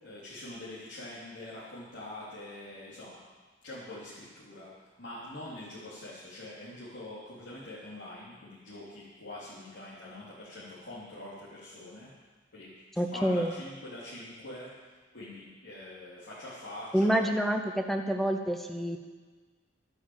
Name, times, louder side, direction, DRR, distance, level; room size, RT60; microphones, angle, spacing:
voice 1, 0.0-3.2 3.6-12.1 12.5-12.7 13.0-17.3, left 1 dB, 80° left, -10 dB, 3.5 m, -44 dB
voice 2, 13.0-13.5 16.9-19.0, equal, ahead, 4 dB, 0.7 m, -27 dB
12.5 x 9.8 x 7.2 m, 1.4 s
head